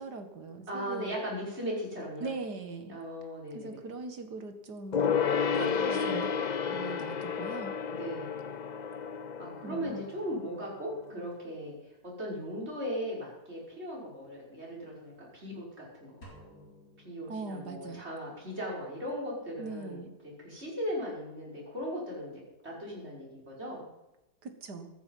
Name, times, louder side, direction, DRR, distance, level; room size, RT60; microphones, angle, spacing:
voice 1, 0.0-1.2 2.2-3.0 3.5-5.2 5.5-6.3 6.7-7.7 9.6-10.0 17.3-18.1 19.6-20.1 24.4-24.9, right 3 dB, 80° right, 7 dB, 2.4 m, -40 dB
voice 2, 0.7-2.3 2.9-3.7 5.5-6.1 7.9-8.4 9.4-11.7 12.0-16.2 17.0-23.9, equal, 40° right, -4 dB, 6.2 m, -38 dB
Gong, 4.9-10.8 11.1-11.2, left 6 dB, 50° left, 0.5 m, -31 dB
sound 1, 16.2-18.0, equal, 70° left, 4.5 m, -54 dB
14.5 x 14.0 x 5.6 m, 0.94 s
omnidirectional pair, 1.7 m